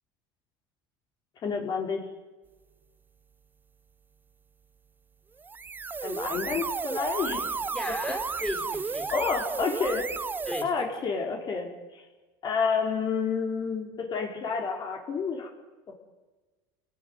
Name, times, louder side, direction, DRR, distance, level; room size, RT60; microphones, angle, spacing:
voice 1, 1.4-2.0 6.0-7.5 9.1-10.1 10.6-12.0 12.4-15.5 15.9-16.0, left 5 dB, 40° left, 2 dB, 4.4 m, -29 dB
sound 1, 5.4-10.6, right 4 dB, 15° right, 0.9 m, -33 dB
voice 2, 7.7-9.1 10.5-10.7, left 1 dB, 5° left, 2 dB, 5.5 m, -35 dB
28.0 x 18.5 x 9.6 m, 1.2 s
supercardioid pair, 120°, 11 cm